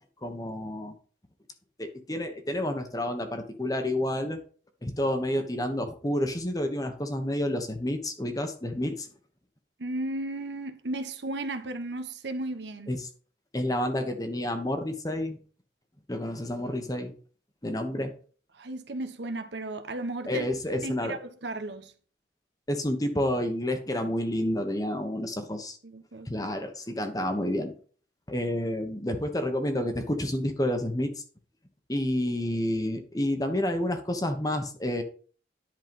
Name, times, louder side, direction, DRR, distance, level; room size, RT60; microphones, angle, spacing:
voice 1, 0.2-0.9 1.8-4.4 4.8-9.1 12.9-13.1 13.5-15.4 16.1-17.1 17.6-18.1 20.3-21.2 22.7-25.8 26.2-27.7 28.3-31.2 31.9-35.0, left 1 dB, 20° left, 1.1 m, -29 dB
voice 2, 9.8-12.9 18.5-20.5 20.8-21.9 25.8-26.5, right 2 dB, 70° right, 1.1 m, -35 dB
10.5 x 4.6 x 5.4 m
head